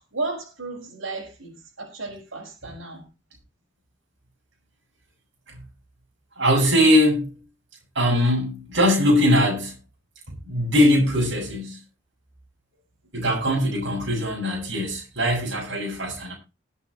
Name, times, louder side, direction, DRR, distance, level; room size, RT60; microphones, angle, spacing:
voice 1, 0.0-3.0, right 3 dB, 85° right, 5.7 m, -34 dB
voice 2, 6.4-7.4 7.9-9.7 10.5-11.8 13.1-16.3, equal, 65° right, 6.2 m, -21 dB
20.5 x 8.6 x 3.1 m
head